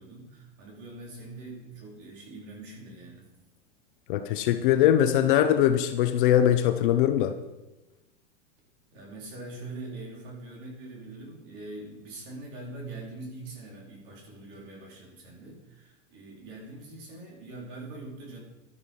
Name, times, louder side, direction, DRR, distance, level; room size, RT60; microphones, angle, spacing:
voice 1, 0.0-3.3 8.9-18.4, right 2 dB, 40° right, -1 dB, 4.3 m, -43 dB
voice 2, 4.1-7.3, left 11 dB, 40° left, 8 dB, 0.7 m, -22 dB
12.0 x 11.0 x 5.5 m, 1.1 s
supercardioid pair, 165°, 38 cm